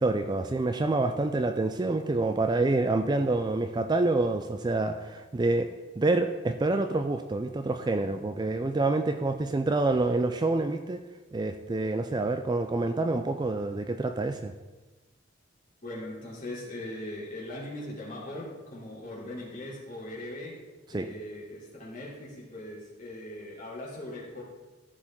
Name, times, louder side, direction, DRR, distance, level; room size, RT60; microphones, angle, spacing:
voice 1, 0.0-5.7 6.0-11.0 11.3-14.5 20.9-21.1, right 2 dB, 20° right, 7 dB, 0.3 m, -27 dB
voice 2, 15.8-20.6 20.9-24.4, left 1 dB, 40° left, -6 dB, 3.1 m, -40 dB
14.0 x 5.0 x 3.7 m, 1.2 s
head